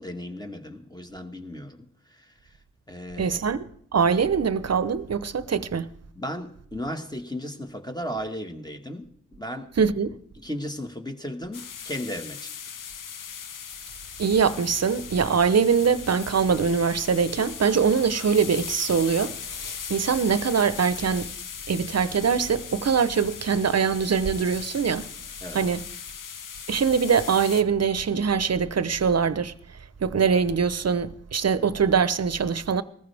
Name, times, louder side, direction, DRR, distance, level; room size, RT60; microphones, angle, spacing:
voice 1, 0.0-2.6 2.9-3.4 6.2-9.7 10.4-12.5 25.4-25.6, equal, 10° left, 1.8 m, -35 dB
voice 2, 3.2-3.7 3.9-5.9 9.8-10.1 14.2-21.3 21.7-25.1 25.5-25.8 26.7-29.5 30.0-32.8, right 6 dB, 50° right, 0.9 m, -23 dB
sound 1, 11.5-27.6, left 7 dB, 70° left, 0.9 m, -39 dB
19.5 x 14.5 x 3.5 m
cardioid pair, 50°, 33 cm